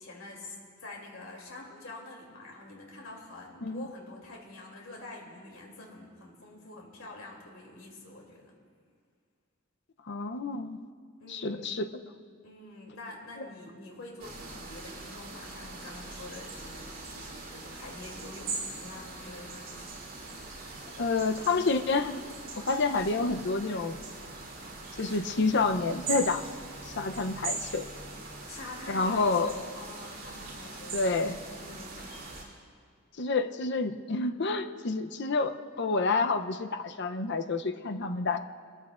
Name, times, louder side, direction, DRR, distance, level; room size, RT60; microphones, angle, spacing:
voice 1, 0.0-8.5 11.2-11.7 12.4-20.5 28.5-31.3 31.6-32.0, left 2 dB, 85° left, -1 dB, 2.9 m, -46 dB
voice 2, 10.1-10.9 11.3-11.9 13.4-13.5 21.0-22.2 22.6-24.0 25.0-26.4 26.8-27.9 28.9-29.5 30.9-31.4 33.2-38.4, left 3 dB, 60° left, 8 dB, 0.7 m, -29 dB
sound 1, 14.2-32.4, right 3 dB, 50° right, 3.6 m, -41 dB
23.0 x 14.5 x 2.5 m, 2.1 s
head